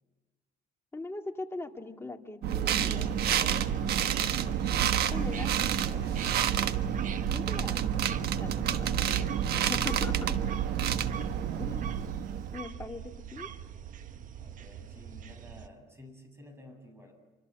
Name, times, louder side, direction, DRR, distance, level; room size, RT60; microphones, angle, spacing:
voice 1, 0.9-3.6 5.1-5.6 7.3-7.8 8.4-10.4 11.6-12.0 12.5-13.5, left 3 dB, 15° left, 3 dB, 2.3 m, -41 dB
sound 1, 2.4-12.6, right 9 dB, 70° right, 1.4 m, -29 dB
sound 2, 2.8-15.7, right 8 dB, 50° right, 1.3 m, -43 dB
voice 2, 4.9-6.7 10.9-11.8 14.4-17.1, left 1 dB, 15° right, 5 dB, 7.5 m, -52 dB
27.0 x 25.5 x 7.7 m, 1.3 s
cardioid pair, 110°, 17 cm